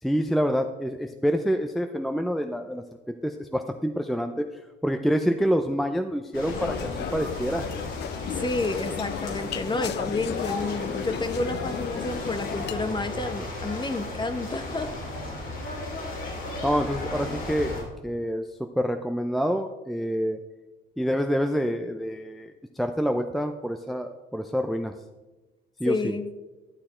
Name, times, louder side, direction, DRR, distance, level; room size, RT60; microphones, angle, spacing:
voice 1, 0.0-4.5 4.8-7.7 16.6-20.4 21.0-24.9 25.8-26.1, equal, ahead, 6 dB, 0.5 m, -27 dB
sound 1, 6.3-17.8, left 2 dB, 80° left, 3.1 m, -35 dB
sound 2, 6.5-12.8, left 10 dB, 60° left, 0.4 m, -35 dB
voice 2, 8.3-14.9 25.9-26.3, left 2 dB, 25° left, 10 dB, 1.0 m, -30 dB
11.5 x 6.6 x 4.4 m, 1.2 s
cardioid pair, 90°, 20 cm